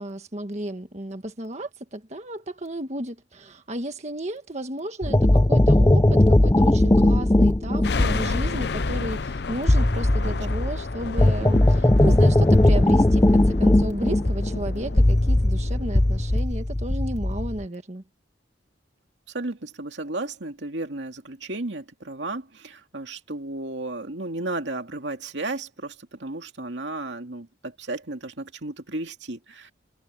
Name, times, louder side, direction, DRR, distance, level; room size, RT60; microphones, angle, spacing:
voice 1, 0.0-18.0, right 1 dB, 35° right, 1.5 m, -33 dB
sound 1, 5.0-17.6, left 1 dB, 15° left, 0.5 m, -19 dB
sound 2, 7.8-16.4, left 4 dB, 60° left, 0.6 m, -33 dB
voice 2, 19.3-29.7, right 2 dB, 75° right, 2.4 m, -33 dB
head